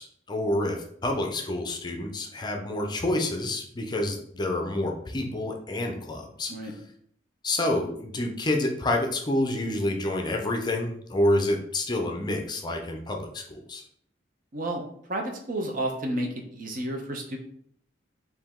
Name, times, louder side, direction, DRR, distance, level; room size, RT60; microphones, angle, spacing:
voice 1, 0.0-6.5 7.4-13.8, left 1 dB, 25° left, 2 dB, 0.5 m, -28 dB
voice 2, 15.1-17.4, right 1 dB, 50° right, 3 dB, 0.8 m, -31 dB
4.9 x 2.7 x 3.6 m, 0.65 s
head